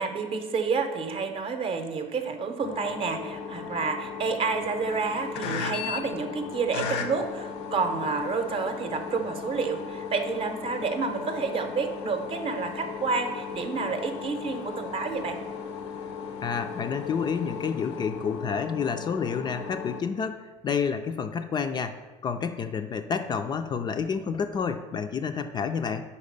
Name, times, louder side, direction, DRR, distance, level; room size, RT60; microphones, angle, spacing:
voice 1, 0.0-15.5, right 4 dB, 40° right, 6 dB, 0.7 m, -29 dB
sound 1, 2.6-20.0, left 6 dB, 80° left, 0.6 m, -36 dB
voice 2, 16.4-20.4 20.6-26.1, left 6 dB, 30° left, 7 dB, 0.4 m, -29 dB
4.7 x 4.1 x 5.2 m, 1.3 s
supercardioid pair, 95°, 14 cm